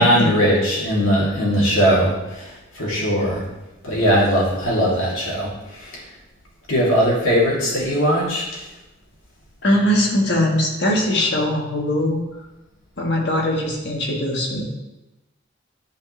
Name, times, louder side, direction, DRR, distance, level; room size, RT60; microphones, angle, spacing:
voice 1, 0.0-3.4 3.8-6.0 6.7-8.5, equal, 85° left, -5 dB, 2.7 m, -19 dB
voice 2, 9.6-12.2 13.0-14.7, left 1 dB, 55° left, -1 dB, 1.6 m, -21 dB
10.0 x 5.4 x 3.3 m, 1.0 s
head